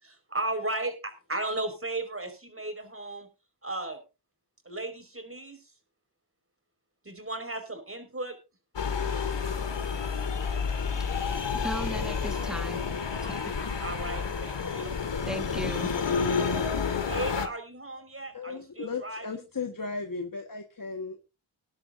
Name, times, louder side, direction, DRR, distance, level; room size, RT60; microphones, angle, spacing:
voice 1, 0.0-3.3 3.6-4.0 4.7-5.6 7.1-8.4 13.8-15.0 17.1-19.3, right 2 dB, 25° right, 5.0 m, -35 dB
sound 1, 8.8-17.5, left 5 dB, 60° left, 1.9 m, -30 dB
voice 2, 11.6-12.8 13.2-13.6 15.3-15.9, right 1 dB, ahead, 1.6 m, -36 dB
voice 3, 18.3-21.3, left 4 dB, 40° left, 1.7 m, -36 dB
20.0 x 10.5 x 2.7 m
cardioid pair, 60°, 48 cm